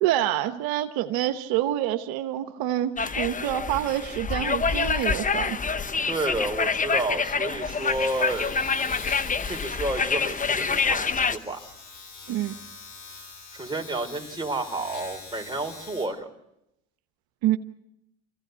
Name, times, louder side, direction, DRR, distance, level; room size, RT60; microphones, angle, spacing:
voice 1, 0.0-5.6 12.3-12.5 17.4-17.6, right 13 dB, 75° right, 8 dB, 1.1 m, -27 dB
Mercat - Pla a Catalunya, 3.0-11.4, left 5 dB, 20° left, 1.0 m, -26 dB
Domestic sounds home sounds, 6.1-16.1, left 4 dB, 60° left, 5.5 m, -45 dB
voice 2, 6.1-8.5 9.4-11.6 13.5-16.3, right 2 dB, 15° right, 3 dB, 4.3 m, -30 dB
26.0 x 16.0 x 8.1 m, 0.84 s
supercardioid pair, 80°, 36 cm